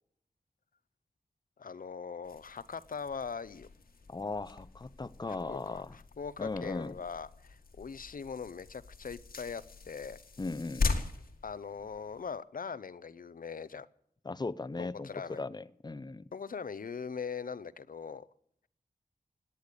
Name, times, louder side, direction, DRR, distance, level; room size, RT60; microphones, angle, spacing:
voice 1, 1.6-3.7 5.5-10.2 11.4-13.9 14.8-15.5 16.3-18.3, left 6 dB, 65° left, 17 dB, 0.7 m, -41 dB
sound 1, 2.2-12.4, left 3 dB, 85° left, 2.0 m, -40 dB
voice 2, 4.1-6.0 6.4-6.9 10.4-10.9 14.2-16.3, left 3 dB, 30° left, 17 dB, 0.7 m, -38 dB
18.0 x 10.0 x 6.8 m, 0.71 s
wide cardioid pair, 70°, 15 cm